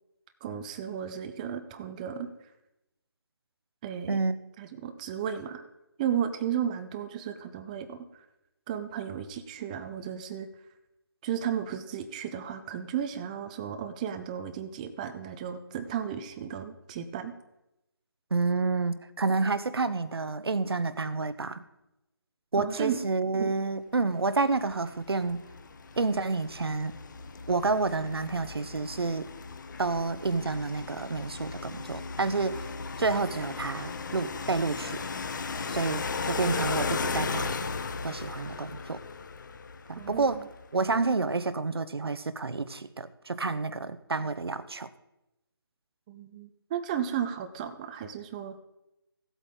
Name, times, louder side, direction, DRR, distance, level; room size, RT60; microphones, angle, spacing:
voice 1, 0.4-2.3 3.8-4.2 4.6-5.6 6.0-8.1 8.7-10.5 11.2-17.3 22.6-23.0 23.4-23.5 40.0-40.5 46.1-48.6, right 9 dB, 20° right, 8 dB, 0.6 m, -34 dB
voice 2, 18.3-21.6 22.5-25.4 26.0-26.9 27.5-29.3 29.8-32.7 33.0-35.0 35.7-37.6 38.0-39.0 39.9-44.9, right 3 dB, 75° right, 14 dB, 0.8 m, -29 dB
sound 1, 24.5-40.7, left 4 dB, 50° left, 0.9 m, -36 dB
16.0 x 8.2 x 3.8 m, 0.91 s
figure-of-eight pair, 155°, 13 cm